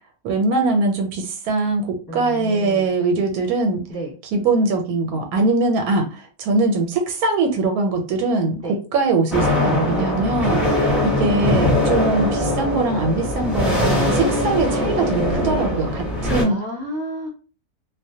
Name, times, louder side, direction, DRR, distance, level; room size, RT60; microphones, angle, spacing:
voice 1, 0.2-3.8 4.3-6.1 6.4-10.6 11.0-16.6, right 3 dB, 90° right, 4 dB, 1.1 m, -21 dB
voice 2, 2.1-2.9 3.9-4.1 8.6-8.8 10.6-11.0 16.3-17.3, right 1 dB, 15° left, -5 dB, 1.0 m, -31 dB
sound 1, 9.3-16.4, left 1 dB, ahead, 0.5 m, -21 dB
2.4 x 2.1 x 2.7 m, 0.36 s
omnidirectional pair, 1.5 m